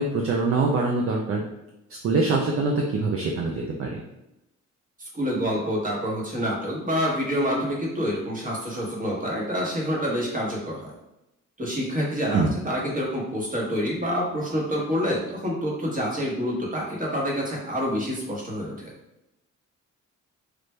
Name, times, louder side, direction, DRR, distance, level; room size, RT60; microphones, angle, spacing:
voice 1, 0.0-1.4 2.0-3.9 12.3-12.5, right 3 dB, 50° right, 0 dB, 0.5 m, -24 dB
voice 2, 5.0-10.9 11.6-18.9, equal, 25° right, -2 dB, 1.2 m, -27 dB
3.2 x 2.5 x 3.2 m, 0.90 s
cardioid pair, 90°, 30 cm